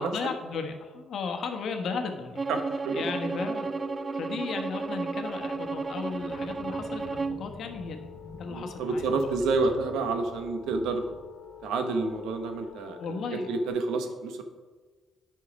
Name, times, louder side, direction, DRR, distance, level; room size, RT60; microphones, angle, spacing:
voice 1, 0.0-2.4 2.9-3.8 4.1-8.1 8.3-9.6 13.0-13.5, left 5 dB, 65° left, 5 dB, 1.2 m, -35 dB
Bowed string instrument, 2.4-7.4, right 4 dB, 30° right, 0.3 m, -33 dB
voice 2, 2.5-3.1 8.5-11.1 11.6-13.0 13.4-14.4, right 3 dB, 85° right, 7 dB, 1.0 m, -29 dB
sound 1, 3.2-13.7, left 5 dB, 10° left, 2.2 m, -46 dB
sound 2, 6.1-12.1, left 2 dB, 50° left, 1.9 m, -48 dB
8.4 x 5.7 x 5.2 m, 1.3 s
cardioid pair, 85°, 0 cm